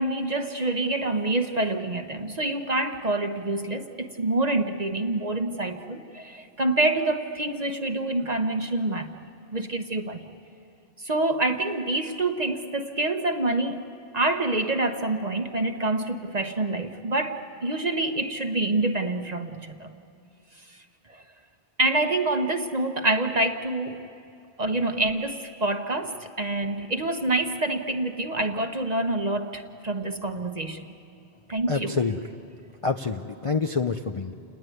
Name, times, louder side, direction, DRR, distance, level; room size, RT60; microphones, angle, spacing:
voice 1, 0.0-9.3 9.5-10.2 11.0-13.8 14.1-19.9 21.1-21.2 21.8-24.0 24.6-30.8 31.5-32.0, right 2 dB, 40° right, 6 dB, 1.0 m, -27 dB
voice 2, 31.7-32.2 32.8-34.3, left 4 dB, 35° left, 5 dB, 0.6 m, -27 dB
29.0 x 19.5 x 9.3 m, 2.6 s
omnidirectional pair, 1.1 m